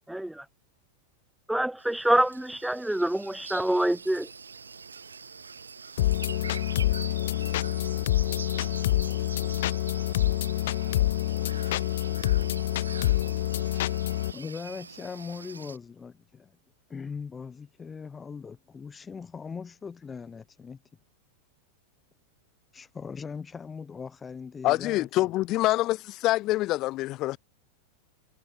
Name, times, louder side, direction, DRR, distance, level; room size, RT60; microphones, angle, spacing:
voice 1, 0.1-0.4 1.5-4.3, right 1 dB, 5° right, 0.3 m, -26 dB
sound 1, 1.8-15.8, right 5 dB, 75° right, 6.6 m, -44 dB
sound 2, 6.0-14.3, left 14 dB, 55° left, 0.6 m, -27 dB
voice 2, 14.3-16.5 16.9-20.8 22.7-25.3, left 5 dB, 15° left, 1.4 m, -40 dB
voice 3, 24.6-27.4, left 17 dB, 35° left, 0.9 m, -26 dB
figure-of-eight pair, 90°, 0 cm